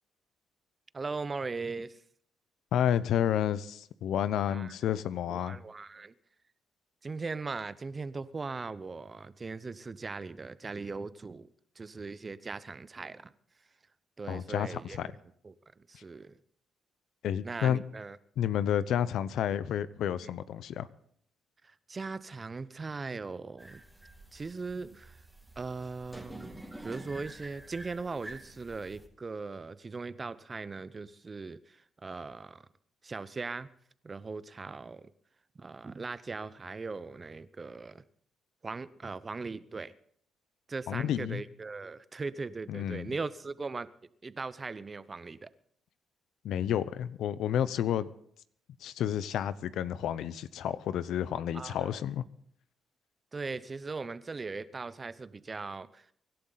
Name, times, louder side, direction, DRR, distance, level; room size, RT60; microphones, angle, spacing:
voice 1, 0.9-2.0 4.5-4.7 5.3-6.1 7.0-11.5 11.8-13.3 14.2-16.4 17.4-18.2 21.6-23.8 24.3-25.2 25.6-32.7 33.0-33.7 34.0-35.1 35.6-38.0 38.6-39.9 40.7-43.9 44.2-45.5 51.5-51.9 53.3-56.1, right 4 dB, 30° right, 16 dB, 0.7 m, -39 dB
voice 2, 2.7-5.6 14.3-15.1 17.2-17.8 18.4-20.9 40.9-41.4 42.7-43.1 46.4-48.1 48.8-52.2, left 10 dB, 75° left, 16 dB, 0.7 m, -30 dB
sound 1, 23.6-29.1, right 1 dB, 5° right, 2.4 m, -48 dB
24.5 x 11.5 x 4.0 m, 0.65 s
cardioid pair, 90°, 0 cm